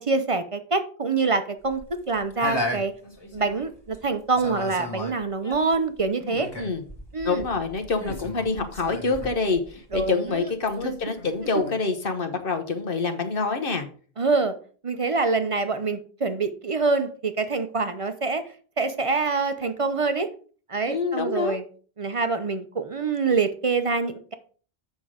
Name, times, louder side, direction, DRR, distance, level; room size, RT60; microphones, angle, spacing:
voice 1, 0.0-2.9 3.3-6.5 7.1-7.5 9.9-10.5 14.2-14.6 14.8-20.3 20.7-21.6 22.0-24.3, right 4 dB, 35° right, 9 dB, 0.7 m, -25 dB
sound 1, 1.7-4.0 4.3-10.3 10.7-11.7, left 1 dB, 25° left, 1.5 m, -35 dB
voice 2, 7.2-13.9 20.9-21.6, left 4 dB, 60° left, 7 dB, 1.3 m, -26 dB
7.8 x 5.8 x 4.9 m, 0.42 s
omnidirectional pair, 1.1 m